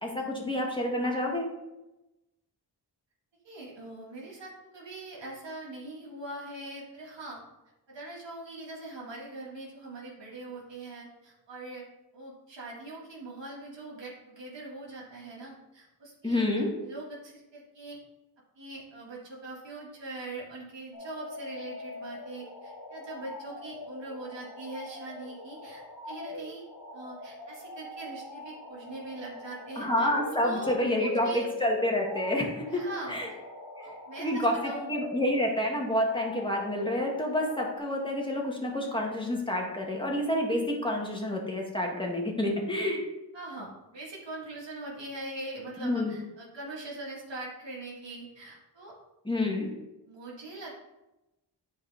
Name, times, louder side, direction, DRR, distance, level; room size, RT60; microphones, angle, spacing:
voice 1, 0.0-1.5 16.2-16.8 29.8-33.3 33.8-33.9 34.2-43.0 45.8-46.2 49.3-49.7, left 1 dB, 10° left, -1 dB, 1.9 m, -29 dB
voice 2, 3.4-7.4 7.9-11.9 12.1-16.4 16.8-18.0 18.6-26.6 26.9-30.1 30.4-31.4 32.7-33.4 33.8-34.3 34.6-34.9 43.3-48.9 50.1-50.8, right 2 dB, 85° right, -4 dB, 2.1 m, -42 dB
sound 1, 20.9-37.8, left 1 dB, 70° left, 1.5 m, -43 dB
9.9 x 4.8 x 3.5 m, 0.98 s
wide cardioid pair, 65°, 43 cm